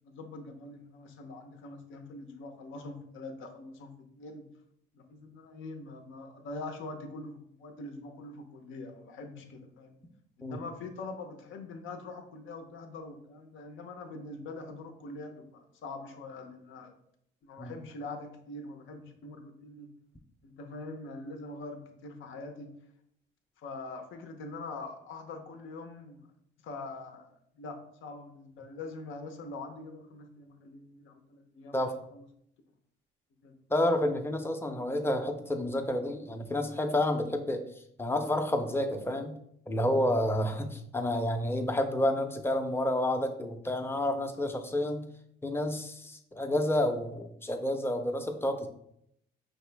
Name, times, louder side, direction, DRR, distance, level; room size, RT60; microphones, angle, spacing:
voice 1, 0.1-4.5 4.9-10.0 10.4-16.9 17.4-19.9 20.4-22.7 23.6-26.2 26.6-32.2 33.4-33.6, left 3 dB, 80° left, 6 dB, 0.7 m, -44 dB
voice 2, 33.7-37.6 38.0-39.4 39.7-45.1 45.4-48.7, left 1 dB, 10° left, 6 dB, 0.6 m, -29 dB
5.4 x 2.9 x 3.3 m, 0.73 s
cardioid pair, 90°, 20 cm